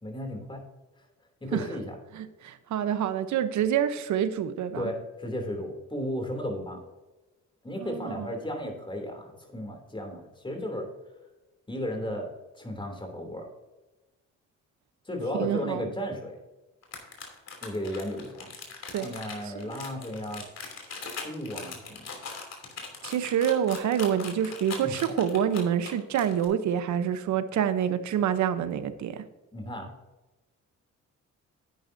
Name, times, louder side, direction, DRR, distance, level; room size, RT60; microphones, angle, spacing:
voice 1, 0.0-0.6 1.4-1.9 4.7-6.8 7.6-10.9 11.7-12.3 12.6-13.5 15.0-16.4 17.6-18.5 19.0-20.5 21.2-22.1 24.8-24.9 29.5-29.9, equal, 15° left, 3 dB, 3.0 m, -34 dB
voice 2, 2.1-4.9 7.8-8.3 15.3-15.9 18.9-19.1 19.6-19.8 23.0-29.2, right 9 dB, 70° right, 11 dB, 0.9 m, -27 dB
sound 1, 16.8-26.4, left 5 dB, 55° left, 3.0 m, -40 dB
11.0 x 9.0 x 2.7 m, 1.1 s
cardioid pair, 90°, 30 cm